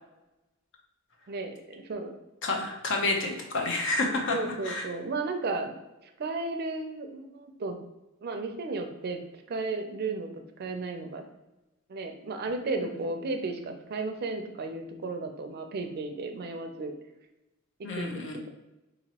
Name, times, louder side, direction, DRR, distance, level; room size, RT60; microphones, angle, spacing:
voice 1, 1.3-2.1 4.3-5.7 6.2-7.8 8.2-9.2 9.5-10.3 10.6-11.2 11.9-16.9 17.8-18.2, right 3 dB, 50° right, 6 dB, 0.4 m, -34 dB
voice 2, 2.4-4.4 4.6-4.9 17.8-18.4, left 2 dB, 60° left, 2 dB, 0.7 m, -29 dB
3.9 x 2.9 x 2.8 m, 0.98 s
head